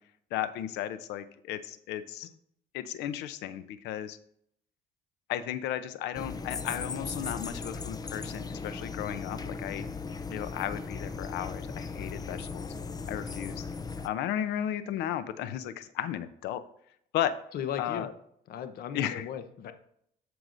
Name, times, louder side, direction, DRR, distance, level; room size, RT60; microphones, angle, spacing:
voice 1, 0.3-2.3 2.7-4.2 5.3-9.9 10.3-12.7 13.1-13.6 14.0-16.6 17.1-17.4 17.8-18.1 18.9-19.3, left 11 dB, 85° left, 13 dB, 0.7 m, -34 dB
sound 1, 6.1-14.1, left 4 dB, 20° left, 0.6 m, -37 dB
voice 2, 17.5-18.1 18.5-19.7, left 8 dB, 65° left, 9 dB, 0.9 m, -36 dB
14.0 x 4.7 x 2.6 m, 0.69 s
cardioid pair, 110°, 17 cm